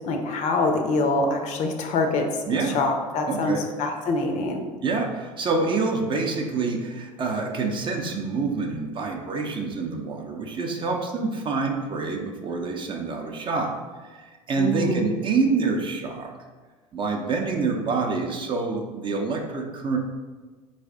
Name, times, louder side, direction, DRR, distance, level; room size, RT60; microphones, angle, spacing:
voice 1, 0.0-4.6 14.6-15.2, left 2 dB, 45° left, 4 dB, 0.6 m, -25 dB
voice 2, 2.5-2.8 3.3-3.6 4.8-13.7 14.1-16.3 16.9-20.0, right 4 dB, 30° right, 2 dB, 0.6 m, -27 dB
4.1 x 3.2 x 3.6 m, 1.4 s
figure-of-eight pair, 65°, 17 cm